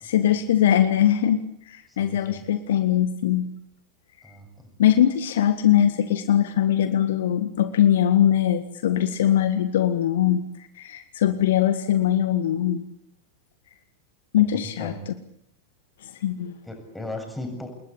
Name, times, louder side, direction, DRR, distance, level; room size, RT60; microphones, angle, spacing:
voice 1, 0.0-3.5 4.8-10.4 10.8-12.8 14.3-14.9 16.2-16.5, left 10 dB, 60° left, 10 dB, 1.7 m, -21 dB
voice 2, 1.9-2.4 4.2-4.7 14.4-15.1 16.6-17.7, left 1 dB, 5° left, 4 dB, 7.5 m, -37 dB
28.5 x 21.0 x 8.7 m, 0.72 s
figure-of-eight pair, 90°, 0 cm